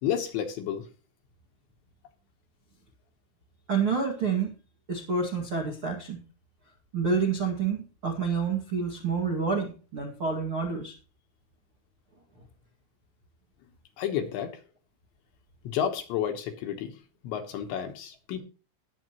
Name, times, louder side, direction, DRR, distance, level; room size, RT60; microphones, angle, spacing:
voice 1, 0.0-0.9 14.0-14.5 15.6-16.9 17.2-18.4, left 9 dB, 70° left, 6 dB, 3.2 m, -31 dB
voice 2, 3.7-4.5 4.9-6.2 6.9-10.9, right 5 dB, 55° right, 0 dB, 1.5 m, -28 dB
20.0 x 7.3 x 3.0 m, 0.35 s
omnidirectional pair, 5.9 m